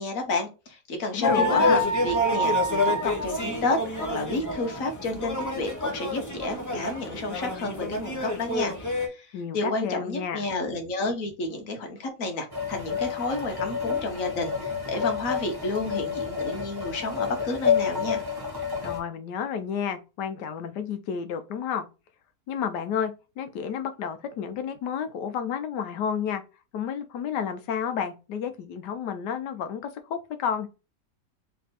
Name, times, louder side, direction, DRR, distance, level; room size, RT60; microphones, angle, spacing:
voice 1, 0.0-18.2, left 2 dB, 55° left, 1.3 m, -31 dB
voice 2, 1.1-1.8 9.3-10.5 18.8-21.9 22.5-26.4 26.7-30.7, left 7 dB, 80° left, 1.3 m, -31 dB
sound 1, 1.2-9.1, left 1 dB, 20° left, 0.5 m, -27 dB
sound 2, 12.5-19.0, left 7 dB, 15° right, 0.9 m, -29 dB
3.5 x 3.3 x 4.0 m
omnidirectional pair, 1.8 m